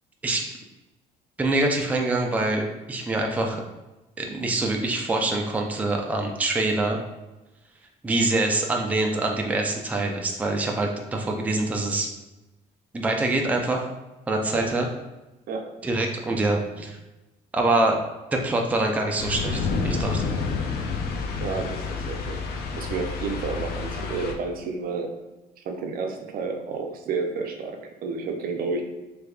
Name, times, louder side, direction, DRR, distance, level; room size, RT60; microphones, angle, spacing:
voice 1, 1.4-3.6 4.2-7.0 8.0-12.1 12.9-13.9 14.3-14.9 15.8-17.0 17.5-18.0 18.3-20.2, right 2 dB, 10° right, 1 dB, 0.4 m, -25 dB
sound 1, 19.2-24.4, left 4 dB, 70° left, 0.5 m, -29 dB
voice 2, 21.4-25.1 25.6-28.8, right 4 dB, 60° right, 4 dB, 0.5 m, -31 dB
3.3 x 3.1 x 2.4 m, 1.0 s
cardioid pair, 110°, 17 cm